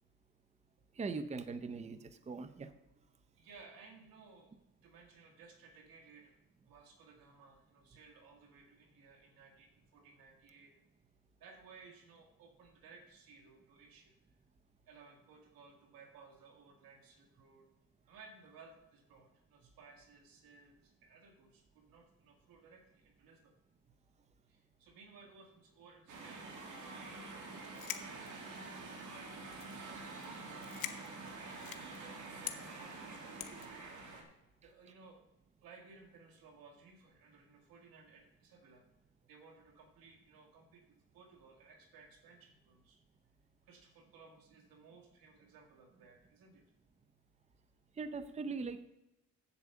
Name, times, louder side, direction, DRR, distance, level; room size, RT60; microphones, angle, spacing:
voice 1, 1.0-2.7 48.0-48.9, right 4 dB, 20° right, 11 dB, 0.6 m, -41 dB
voice 2, 3.4-6.4 6.6-10.7 11.4-14.1 14.9-17.7 18.1-23.5 24.5-29.1 29.8-31.0 31.3-33.4 34.6-35.2 35.6-38.9 39.3-43.0 43.6-46.6, right 4 dB, 80° right, 4 dB, 2.0 m, -60 dB
sound 1, 26.1-34.2, right 3 dB, 60° right, 2.5 m, -47 dB
sound 2, 27.6-28.9 29.5-29.9 30.2-30.3 30.6-32.0 32.4-32.6 33.4-33.7, left 13 dB, 85° left, 0.9 m, -44 dB
8.1 x 8.1 x 6.8 m, 0.89 s
cardioid pair, 120°, 34 cm